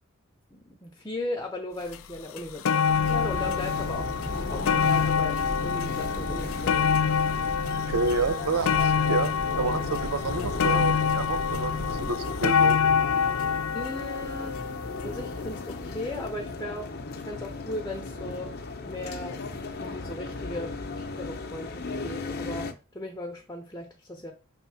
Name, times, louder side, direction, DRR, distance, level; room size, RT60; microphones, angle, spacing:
voice 1, 0.5-6.9 13.7-14.6 15.0-19.4 19.8-24.3, left 1 dB, 15° left, 0.9 m, -37 dB
sound 1, 1.9-2.0 2.4-15.5 16.3-16.4, left 7 dB, 70° left, 0.4 m, -26 dB
sound 2, 2.8-12.1, equal, 20° right, 0.6 m, -38 dB
sound 3, 2.9-22.7, left 3 dB, 45° left, 0.8 m, -36 dB
voice 2, 7.9-12.8, right 4 dB, 85° right, 0.6 m, -29 dB
5.2 x 3.6 x 5.8 m
head